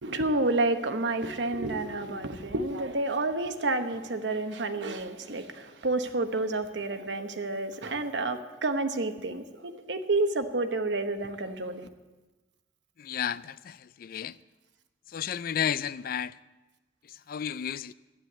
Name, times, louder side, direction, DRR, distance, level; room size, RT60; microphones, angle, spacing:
voice 1, 0.0-11.9, right 2 dB, 75° right, 1.0 m, -29 dB
voice 2, 13.0-14.4 15.1-16.4 17.3-17.9, left 8 dB, 55° left, 0.4 m, -32 dB
12.0 x 9.8 x 7.9 m
head